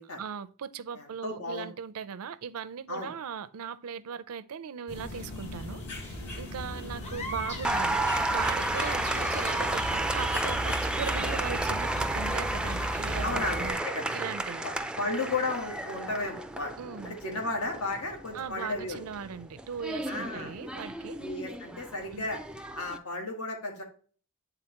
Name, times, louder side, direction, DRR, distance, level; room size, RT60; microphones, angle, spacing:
voice 1, 0.0-13.8 14.1-14.6 16.8-17.1 18.3-21.2 22.1-22.3, right 7 dB, 80° right, 0.5 m, -39 dB
voice 2, 0.9-1.7 2.9-3.1 13.2-14.1 14.6-14.7 15.0-16.7 17.0-19.0 20.1-20.5 21.2-22.4 22.8-23.8, left 2 dB, 80° left, 1.5 m, -34 dB
sound 1, 4.9-13.8, equal, 55° left, 2.4 m, -37 dB
sound 2, 7.0-11.4, left 1 dB, 30° left, 0.8 m, -42 dB
Applause, 7.6-23.0, right 2 dB, 5° right, 0.3 m, -32 dB
9.0 x 3.8 x 2.9 m
head